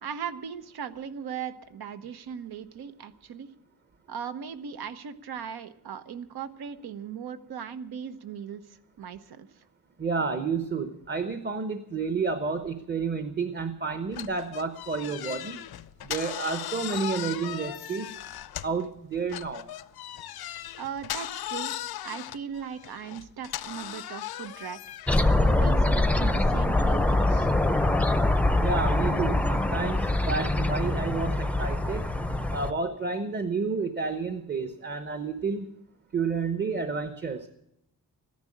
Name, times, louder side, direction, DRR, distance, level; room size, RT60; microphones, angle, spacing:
voice 1, 0.0-3.5 4.1-9.5 20.8-21.7 22.0-24.8 25.4-27.5, right 7 dB, 90° right, 11 dB, 1.2 m, -38 dB
voice 2, 10.0-15.6 16.0-18.1 18.6-19.7 28.6-32.1 32.5-35.7 36.1-37.5, right 4 dB, 30° right, 9 dB, 0.9 m, -30 dB
sound 1, 14.1-18.9 19.3-25.4, left 12 dB, 90° left, 0.7 m, -37 dB
sound 2, 25.1-32.7, left 2 dB, 5° left, 0.5 m, -24 dB
14.0 x 10.5 x 8.5 m, 0.78 s
wide cardioid pair, 155°, 36 cm